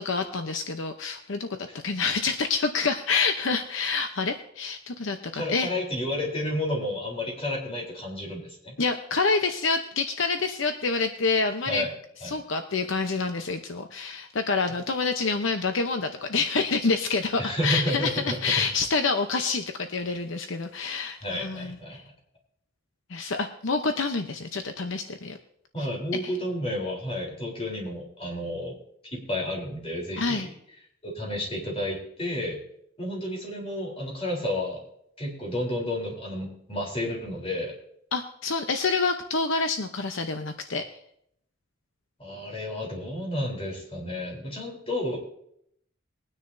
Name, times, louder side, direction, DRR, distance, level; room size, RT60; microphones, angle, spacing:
voice 1, 0.0-5.7 8.8-11.9 12.2-22.0 23.1-25.4 26.2-26.3 30.2-30.5 38.1-40.8, left 4 dB, 70° left, 6 dB, 0.8 m, -27 dB
voice 2, 5.3-8.8 11.7-11.9 12.2-12.4 17.4-18.7 21.2-22.0 25.7-28.8 29.1-30.5 31.0-32.6 33.0-34.8 35.2-37.7 42.2-45.2, left 1 dB, 30° left, -1 dB, 3.7 m, -31 dB
21.5 x 9.7 x 2.7 m, 0.70 s
head